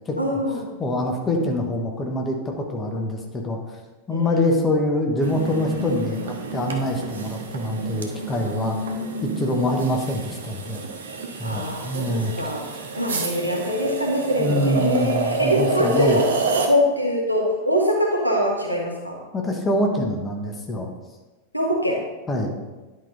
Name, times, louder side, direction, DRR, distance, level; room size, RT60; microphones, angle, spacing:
voice 1, 0.2-0.6 4.1-4.6 9.5-9.8 11.4-12.6 12.9-16.2 16.6-19.2 21.5-22.0, equal, 90° left, -2 dB, 1.6 m, -23 dB
voice 2, 0.8-3.6 4.1-8.8 9.4-10.8 11.4-12.3 14.4-16.2 19.3-20.9 22.3-22.6, left 1 dB, 20° left, 1 dB, 1.3 m, -25 dB
sound 1, 5.2-16.7, right 4 dB, 65° right, 1.1 m, -29 dB
10.5 x 5.3 x 4.1 m, 1.2 s
figure-of-eight pair, 90°, 0 cm